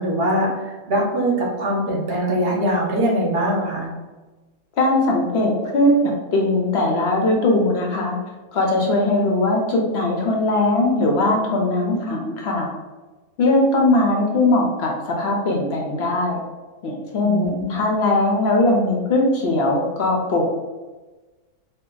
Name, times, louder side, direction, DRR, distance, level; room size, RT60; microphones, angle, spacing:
voice 1, 0.0-3.9 17.2-17.8, right 1 dB, 50° right, -2 dB, 0.8 m, -22 dB
voice 2, 4.8-5.9 6.3-8.2 8.5-12.7 13.4-16.4 16.8-20.4, left 2 dB, 65° left, 0 dB, 0.6 m, -20 dB
2.6 x 2.2 x 3.8 m, 1.2 s
omnidirectional pair, 1.6 m